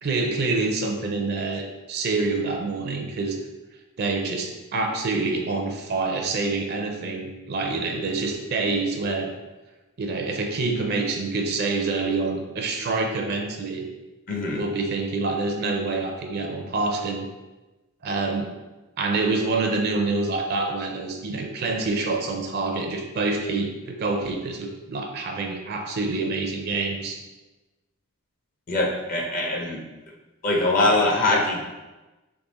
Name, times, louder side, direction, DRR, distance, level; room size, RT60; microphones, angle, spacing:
voice 1, 0.0-3.4 4.0-9.3 10.0-13.9 14.6-17.3 18.0-18.5 19.0-27.2, right 3 dB, 45° right, 3 dB, 0.5 m, -26 dB
voice 2, 14.3-14.6 28.7-29.8 30.4-31.6, left 2 dB, 40° left, 0 dB, 0.6 m, -22 dB
3.6 x 3.2 x 4.0 m, 1.1 s
head